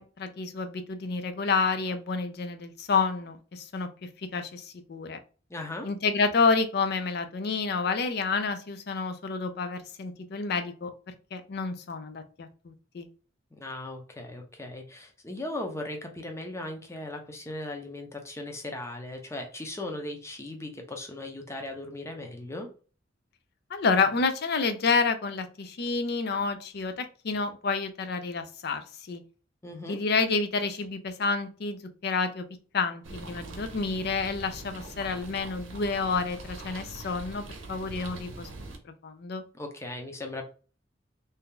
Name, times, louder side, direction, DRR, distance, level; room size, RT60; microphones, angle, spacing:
voice 1, 0.0-5.2 5.8-10.9 11.3-13.1 23.7-29.2 29.9-32.4 32.7-38.5 39.0-39.4, left 4 dB, 55° left, 9 dB, 0.5 m, -29 dB
voice 2, 5.5-5.9 13.5-22.7 29.6-30.0 39.5-40.5, left 2 dB, 15° left, 3 dB, 0.6 m, -38 dB
sound 1, 33.0-38.8, right 2 dB, 85° right, 0.7 m, -42 dB
2.7 x 2.4 x 3.6 m, 0.37 s
head